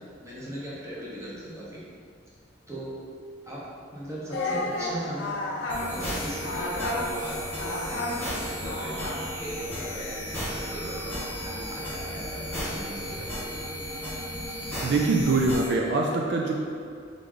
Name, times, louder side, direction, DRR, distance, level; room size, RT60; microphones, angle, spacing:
voice 1, 0.0-1.8 2.7-2.9 3.4-3.6 3.9-9.0 9.3-13.3, right 1 dB, 15° right, -7 dB, 0.9 m, -38 dB
Singing, 4.3-9.4, left 2 dB, 85° left, 0.6 m, -32 dB
sound 1, 5.7-15.7, equal, 10° left, 1.3 m, -34 dB
voice 2, 14.8-16.5, right 3 dB, 65° right, 0 dB, 0.4 m, -23 dB
3.7 x 3.4 x 3.8 m, 2.2 s
head